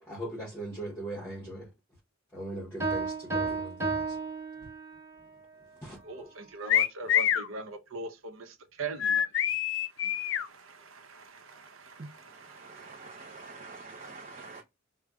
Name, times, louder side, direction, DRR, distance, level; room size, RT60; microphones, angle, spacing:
voice 1, 0.0-1.7 2.3-4.2 4.6-4.7 5.8-6.3, right 1 dB, 15° left, 0.9 m, -40 dB
Piano, 2.8-5.2, right 4 dB, 15° right, 1.4 m, -32 dB
voice 2, 6.0-9.3 9.9-13.4, right 3 dB, 80° right, 0.7 m, -42 dB
sound 1, 6.7-7.5 9.0-10.5, left 10 dB, 65° left, 0.4 m, -26 dB
voice 3, 12.0-14.6, right 3 dB, 35° right, 0.5 m, -46 dB
5.0 x 2.1 x 2.3 m
head